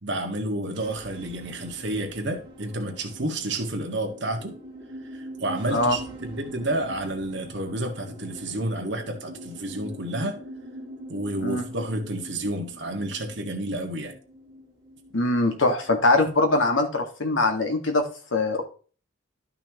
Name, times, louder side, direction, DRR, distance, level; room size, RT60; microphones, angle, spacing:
voice 1, 0.0-4.6 5.1-10.4 11.1-14.1, right 1 dB, 65° right, 1.7 m, -30 dB
sound 1, 0.7-16.1, equal, 25° right, 2.6 m, -43 dB
voice 2, 15.1-18.6, left 2 dB, 80° left, 1.8 m, -22 dB
12.5 x 5.8 x 3.0 m
head